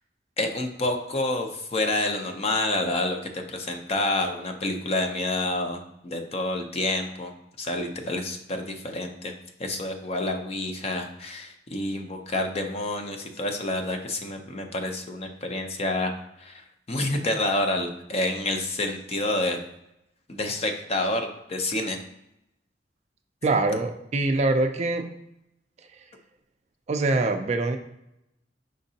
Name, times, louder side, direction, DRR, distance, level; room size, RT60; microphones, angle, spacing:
voice 1, 0.4-7.3 7.6-9.3 9.6-19.6 20.3-22.0, left 2 dB, 35° left, 4 dB, 0.6 m, -28 dB
voice 2, 23.4-25.0 26.9-27.8, right 2 dB, 40° right, 6 dB, 0.4 m, -24 dB
5.1 x 3.7 x 2.7 m, 0.83 s
head